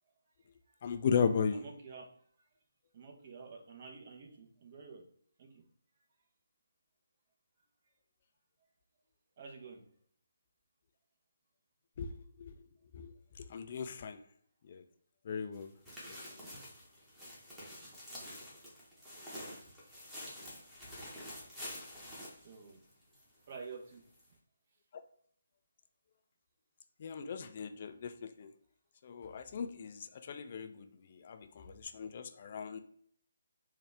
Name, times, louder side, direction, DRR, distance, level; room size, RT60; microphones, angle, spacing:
voice 1, 0.8-1.6 12.0-12.5 12.9-14.2 14.7-14.8 15.2-15.7 27.0-28.5 29.0-32.8, left 6 dB, 40° left, 8 dB, 0.3 m, -37 dB
voice 2, 1.5-2.1 2.9-5.0 5.4-5.6 9.4-9.8 22.4-22.8 23.5-24.0, right 5 dB, 40° right, 2 dB, 0.8 m, -49 dB
sound 1, 15.5-23.2 23.5-23.6 24.2-24.3, left 1 dB, 5° right, 1.1 m, -48 dB
3.8 x 2.4 x 3.3 m, 0.63 s
figure-of-eight pair, 145°, 0 cm